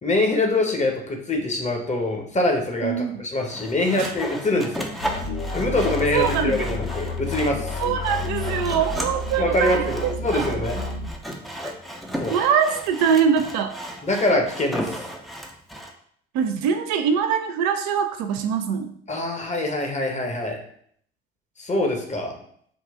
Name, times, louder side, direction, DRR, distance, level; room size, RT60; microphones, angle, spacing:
voice 1, 0.0-4.9 5.5-7.8 9.4-10.8 12.2-12.4 14.0-15.0 19.1-20.6 21.6-22.4, left 2 dB, 20° left, 2 dB, 1.0 m, -24 dB
voice 2, 2.8-3.2 4.0-4.1 6.1-6.5 7.8-10.6 11.6-11.7 12.3-13.8 16.3-18.9, right 7 dB, 60° right, 7 dB, 0.5 m, -23 dB
Sawing, 3.5-15.9, equal, ahead, 0.6 m, -35 dB
sound 1, 5.0-11.1, left 3 dB, 85° left, 0.7 m, -30 dB
3.8 x 2.3 x 3.5 m, 0.64 s
hypercardioid pair, 55°, 31 cm